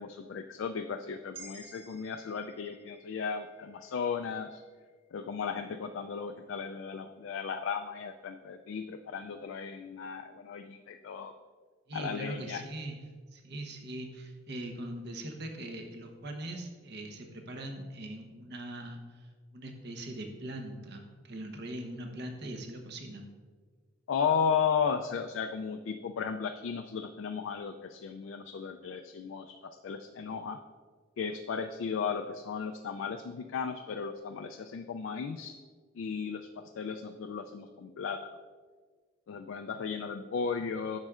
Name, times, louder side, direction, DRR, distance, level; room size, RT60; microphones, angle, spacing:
voice 1, 0.0-4.6 5.1-11.3 11.9-12.6 24.1-29.5 29.8-30.6 31.2-35.6 36.0-38.2 39.3-41.0, left 6 dB, 70° left, 6 dB, 0.3 m, -35 dB
sound 1, 1.3-5.6, right 3 dB, 30° right, 1.0 m, -54 dB
voice 2, 11.9-13.0 13.3-23.3, right 1 dB, 60° right, 4 dB, 0.9 m, -41 dB
10.5 x 6.5 x 2.4 m, 1.6 s
head